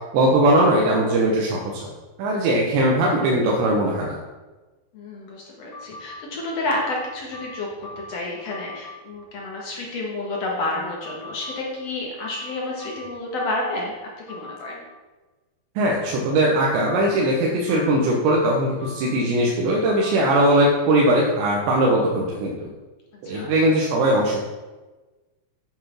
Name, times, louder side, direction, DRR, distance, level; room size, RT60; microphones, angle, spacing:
voice 1, 0.1-1.9 2.2-4.2 15.8-22.7 23.2-24.4, right 1 dB, 80° right, -2 dB, 3.3 m, -20 dB
voice 2, 4.9-13.9 14.3-14.8 23.2-23.5, left 2 dB, 55° left, -2 dB, 1.8 m, -30 dB
sound 1, 5.7-6.2 6.8-8.2 8.5-9.0 11.0-11.6 12.2-13.8 14.3-14.7 16.7-17.2 17.7-19.2 19.7-20.1, left 2 dB, 80° left, 0.9 m, -40 dB
9.1 x 6.2 x 6.0 m, 1.2 s
omnidirectional pair, 5.1 m